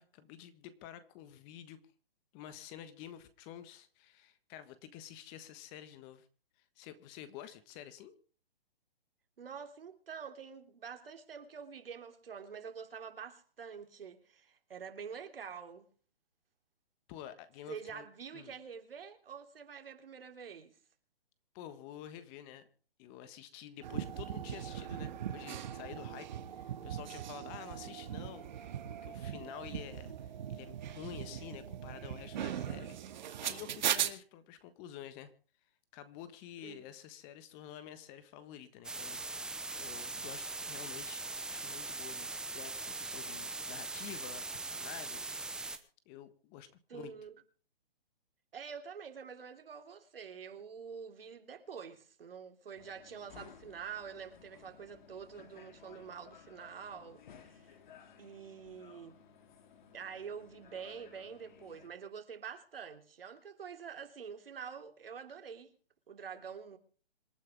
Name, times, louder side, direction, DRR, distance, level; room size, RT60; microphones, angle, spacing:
voice 1, 0.0-1.8 2.3-6.3 6.8-8.2 17.1-18.1 18.3-18.5 21.5-22.7 23.0-35.3 35.9-42.3 42.5-45.4 46.0-47.1, left 11 dB, 25° left, 1.4 m, -50 dB
voice 2, 9.4-15.8 17.7-20.8 36.6-36.8 46.9-47.3 48.5-57.7 58.2-59.2 59.9-65.7 66.1-66.8, right 6 dB, 70° right, 3.3 m, -47 dB
sound 1, 23.8-34.1, right 10 dB, 50° right, 2.0 m, -39 dB
sound 2, 38.8-45.8, right 3 dB, ahead, 0.8 m, -41 dB
sound 3, 52.8-61.9, left 7 dB, 50° left, 2.7 m, -58 dB
26.5 x 9.6 x 3.6 m
hypercardioid pair, 145°, 30 cm